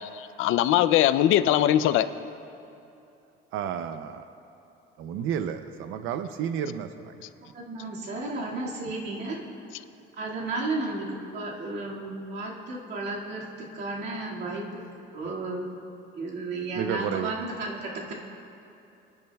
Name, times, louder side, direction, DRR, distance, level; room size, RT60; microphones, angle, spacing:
voice 1, 0.0-2.1, left 12 dB, 80° left, 0.5 m, -21 dB
voice 2, 3.5-4.2 5.0-7.2 15.2-15.3 16.8-17.3, right 8 dB, 90° right, 0.5 m, -31 dB
voice 3, 7.5-9.4 10.2-14.8 15.1-15.8 16.1-18.1, right 2 dB, 55° right, 2.1 m, -33 dB
25.5 x 10.5 x 2.3 m
cardioid pair, 180°, 20 cm